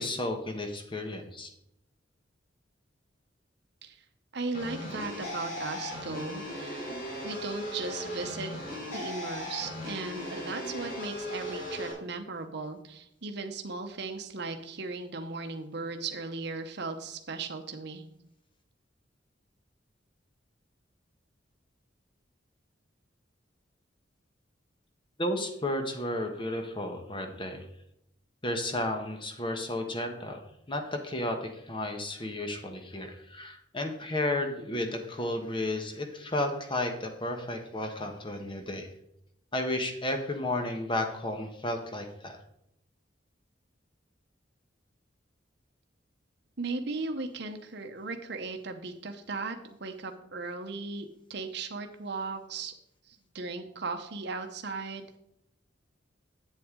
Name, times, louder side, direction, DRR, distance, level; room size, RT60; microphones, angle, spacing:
voice 1, 0.0-1.5 25.2-27.7 28.4-30.4 30.7-38.9 39.5-42.4, left 1 dB, 25° left, 5 dB, 1.2 m, -33 dB
voice 2, 4.3-7.0 7.2-8.5 8.9-18.0 46.6-52.7 53.1-55.2, right 3 dB, 60° right, 6 dB, 0.9 m, -37 dB
sound 1, 4.5-11.9, left 1 dB, 50° left, 3.5 m, -37 dB
8.3 x 7.8 x 3.8 m, 0.77 s
head